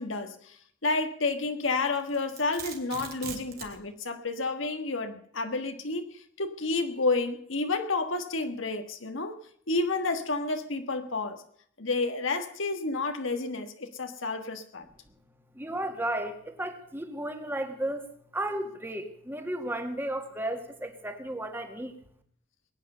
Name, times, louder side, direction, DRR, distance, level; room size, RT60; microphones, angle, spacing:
voice 1, 0.0-9.4 9.7-11.4 11.8-14.8, left 3 dB, 80° left, 7 dB, 1.6 m, -30 dB
Domestic sounds home sounds, 1.9-3.8, right 7 dB, 50° right, 2.9 m, -41 dB
voice 2, 15.5-18.1 18.3-22.0, right 1 dB, 10° right, 6 dB, 2.0 m, -34 dB
21.0 x 9.6 x 6.8 m, 0.63 s
head